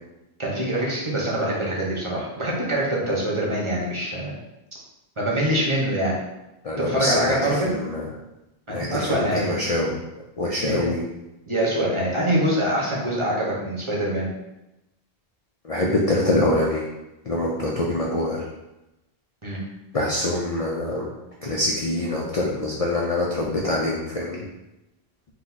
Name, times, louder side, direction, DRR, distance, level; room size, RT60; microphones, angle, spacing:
voice 1, 0.4-4.3 5.2-6.1 6.8-7.7 8.7-9.5 10.7-10.9 11.5-14.3 19.4-19.6, right 1 dB, 30° right, -4 dB, 0.9 m, -24 dB
voice 2, 6.6-8.1 8.7-9.9 10.4-11.0 15.6-16.8 17.2-18.5 19.9-21.1 21.4-24.4, left 1 dB, 45° left, -2 dB, 0.5 m, -25 dB
4.6 x 2.3 x 4.0 m, 0.96 s
omnidirectional pair, 1.1 m